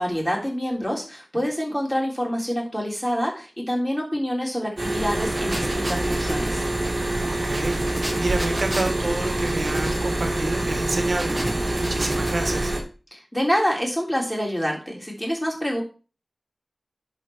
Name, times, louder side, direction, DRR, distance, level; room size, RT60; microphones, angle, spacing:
voice 1, 0.0-6.6 13.1-15.8, equal, 10° left, -1 dB, 3.5 m, -26 dB
sound 1, 4.8-12.8, right 1 dB, 45° right, 2.4 m, -26 dB
sound 2, 4.9-12.7, right 1 dB, 25° right, 1.5 m, -34 dB
voice 2, 7.2-12.7, right 2 dB, 75° right, 5 dB, 1.4 m, -29 dB
11.0 x 4.6 x 4.5 m, 0.35 s
wide cardioid pair, 60°, 0 cm